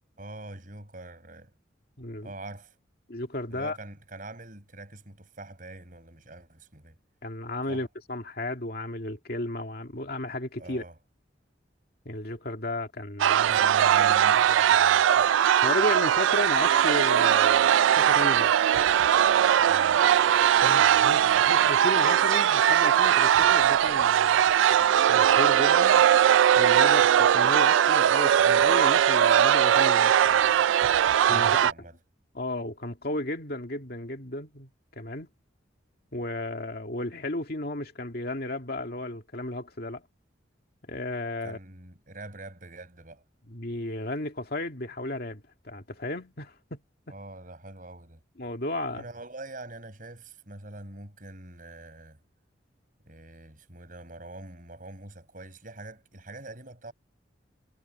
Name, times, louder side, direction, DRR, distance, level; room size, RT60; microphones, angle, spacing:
voice 1, 0.2-1.5 2.2-2.8 3.5-7.0 7.7-7.8 10.6-11.0 13.5-15.4 19.6-20.0 31.3-32.0 41.4-43.2 47.1-48.2 48.9-52.2 53.1-56.9, right 2 dB, 45° right, 6.0 m, -44 dB
voice 2, 2.0-2.3 3.1-3.8 7.2-10.8 12.0-13.6 15.6-18.5 20.6-24.4 24.8-26.1 26.6-30.6 31.3-31.7 32.3-35.3 36.1-40.0 40.8-41.6 43.5-46.8 48.4-49.0, left 1 dB, 55° left, 2.3 m, -34 dB
sound 1, 13.2-31.7, right 9 dB, 90° right, 0.3 m, -20 dB
head